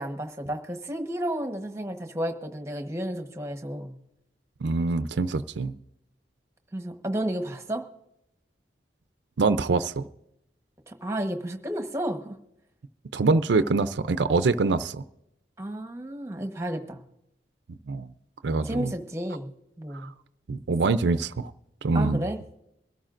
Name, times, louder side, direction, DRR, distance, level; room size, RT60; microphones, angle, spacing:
voice 1, 0.0-3.9 6.7-7.8 10.9-12.4 15.6-17.0 18.6-19.5 19.8-20.1 21.9-22.4, right 1 dB, 15° right, 6 dB, 1.1 m, -32 dB
voice 2, 4.6-5.7 9.4-10.0 13.1-15.0 17.9-18.1 18.4-18.9 20.5-21.5 21.8-22.3, right 3 dB, 75° right, 12 dB, 0.5 m, -24 dB
23.0 x 13.5 x 2.5 m, 0.82 s
head